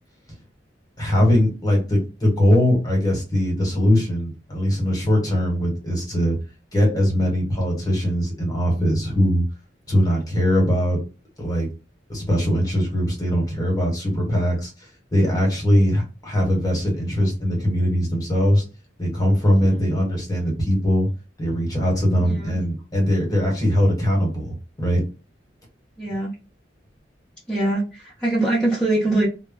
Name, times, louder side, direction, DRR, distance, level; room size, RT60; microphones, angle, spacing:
voice 1, 1.0-6.4 6.7-9.4 9.9-11.0 11.4-11.7 12.1-14.7 15.1-18.6 19.0-21.1 21.4-25.0, equal, 20° left, -1 dB, 1.1 m, -21 dB
voice 2, 22.2-22.6 26.0-26.3 27.5-29.3, right 2 dB, 5° left, -9 dB, 0.7 m, -23 dB
2.1 x 2.1 x 3.6 m, 0.31 s
head